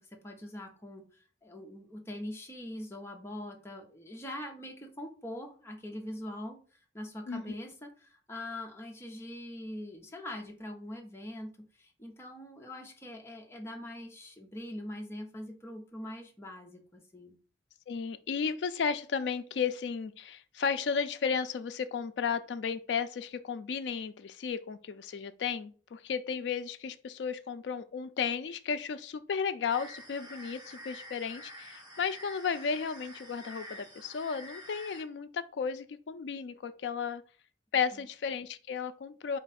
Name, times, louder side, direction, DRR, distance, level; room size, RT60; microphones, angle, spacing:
voice 1, 0.0-17.4 37.9-38.0, left 1 dB, 15° left, 0.8 m, -43 dB
voice 2, 17.9-37.2 37.7-39.4, left 6 dB, 80° left, 0.4 m, -34 dB
sound 1, 29.7-35.0, equal, 25° right, 0.8 m, -48 dB
4.4 x 2.3 x 4.1 m
head